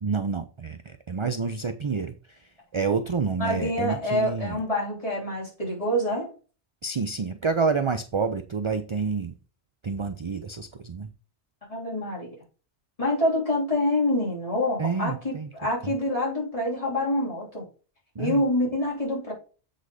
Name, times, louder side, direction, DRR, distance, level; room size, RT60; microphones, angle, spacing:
voice 1, 0.0-2.4 2.7-4.6 6.8-9.3 9.8-11.1 14.8-15.5 15.8-15.9 18.2-18.4, right 5 dB, 45° right, 9 dB, 0.4 m, -28 dB
voice 2, 3.4-6.3 11.7-12.3 13.0-17.6 18.2-19.3, left 1 dB, 30° left, -5 dB, 4.0 m, -26 dB
7.9 x 4.1 x 4.8 m, 0.36 s
omnidirectional pair, 1.2 m